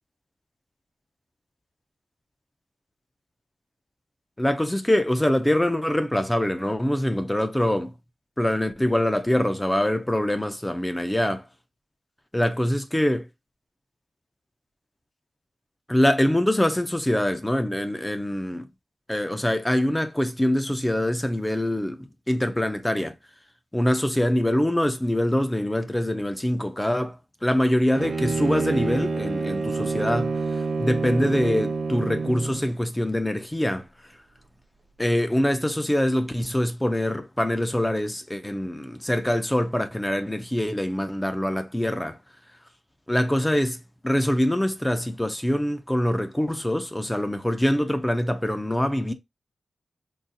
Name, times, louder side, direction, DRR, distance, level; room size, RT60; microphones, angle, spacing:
voice 1, 4.4-7.9 8.4-11.4 12.3-13.3 15.9-18.6 19.1-23.1 23.7-33.9 35.0-42.2 43.1-49.1, left 1 dB, 10° left, 0.3 m, -24 dB
Bowed string instrument, 27.9-32.7, right 3 dB, 55° right, 0.7 m, -27 dB
3.8 x 2.3 x 2.6 m
wide cardioid pair, 150°, 0 cm